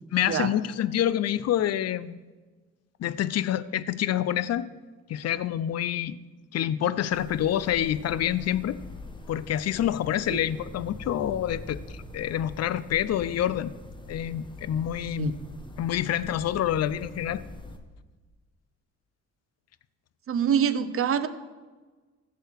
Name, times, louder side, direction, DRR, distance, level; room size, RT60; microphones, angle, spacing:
voice 1, 0.1-2.2 3.0-4.7 5.1-6.2 6.5-8.8 9.3-13.7 14.1-15.4 15.8-17.4, left 11 dB, 55° left, 17 dB, 0.6 m, -27 dB
sound 1, 7.1-17.8, left 2 dB, 15° left, 1.2 m, -43 dB
voice 2, 20.3-21.3, right 8 dB, 45° right, 12 dB, 0.8 m, -25 dB
14.5 x 7.0 x 4.7 m, 1.3 s
cardioid pair, 90°, 30 cm